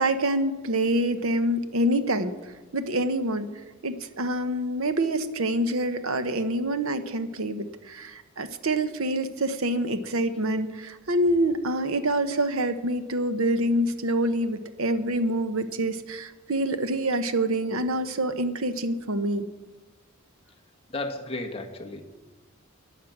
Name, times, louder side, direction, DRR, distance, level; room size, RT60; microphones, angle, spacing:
voice 1, 0.0-2.3 2.7-3.5 3.8-19.5, right 1 dB, 80° right, 9 dB, 1.0 m, -26 dB
voice 2, 20.9-22.0, left 2 dB, 30° left, 1 dB, 1.5 m, -33 dB
12.5 x 9.3 x 7.3 m, 1.2 s
head